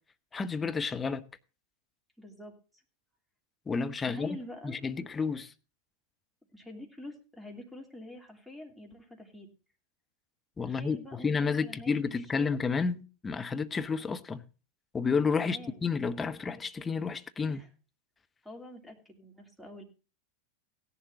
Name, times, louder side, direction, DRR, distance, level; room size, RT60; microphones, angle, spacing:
voice 1, 0.3-1.2 3.7-4.4 4.6-5.5 10.6-14.4 14.9-17.6, left 5 dB, 15° left, 0.9 m, -31 dB
voice 2, 2.2-2.8 4.0-4.8 6.5-9.5 10.6-12.0 12.3-12.6 15.4-15.9 17.5-17.7 18.4-19.8, left 1 dB, ahead, 2.8 m, -46 dB
16.5 x 11.0 x 2.7 m
figure-of-eight pair, 90°, 0 cm